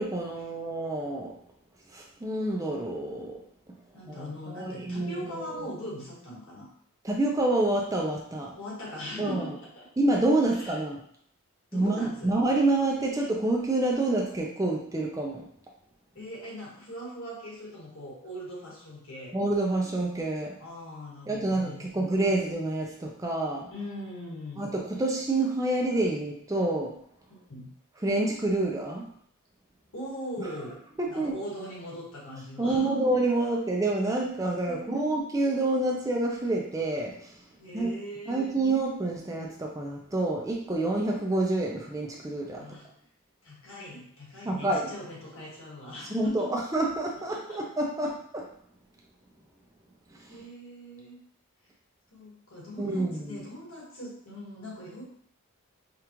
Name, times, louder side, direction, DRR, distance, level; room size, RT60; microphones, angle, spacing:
voice 1, 0.0-1.3 1.9-3.4 4.1-5.7 7.0-8.6 9.2-9.5 10.0-11.0 11.7-15.5 19.3-20.5 21.3-23.7 24.6-27.0 28.0-29.1 31.0-31.3 32.6-37.3 37.7-37.9 38.3-42.6 44.4-44.9 46.1-48.5 50.3-50.4 52.8-53.4, right 2 dB, 15° right, -1 dB, 0.4 m, -28 dB
voice 2, 3.9-6.7 8.5-9.5 9.7-9.9 10.5-10.8 11.7-12.3 16.1-19.3 20.6-22.4 23.7-24.7 27.3-27.7 29.9-30.8 31.1-33.0 34.6-35.2 37.6-38.6 42.6-42.9 43.4-46.5 47.3-47.6 50.3-51.2 52.1-55.0, equal, 65° left, -5 dB, 1.5 m, -40 dB
5.0 x 2.4 x 2.9 m, 0.66 s
head